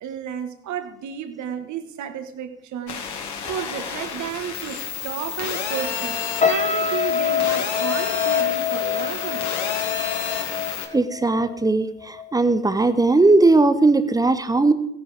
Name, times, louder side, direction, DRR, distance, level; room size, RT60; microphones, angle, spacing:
voice 1, 0.0-6.2 6.4-9.6, right 8 dB, 35° right, 9 dB, 1.5 m, -32 dB
sound 1, 2.9-10.9, left 7 dB, 35° left, 2.1 m, -30 dB
sound 2, 6.4-11.7 12.0-12.3, left 7 dB, 15° left, 1.0 m, -25 dB
voice 2, 10.9-14.7, right 3 dB, 10° right, 12 dB, 0.6 m, -18 dB
17.0 x 9.9 x 3.4 m, 0.83 s
figure-of-eight pair, 80°, 48 cm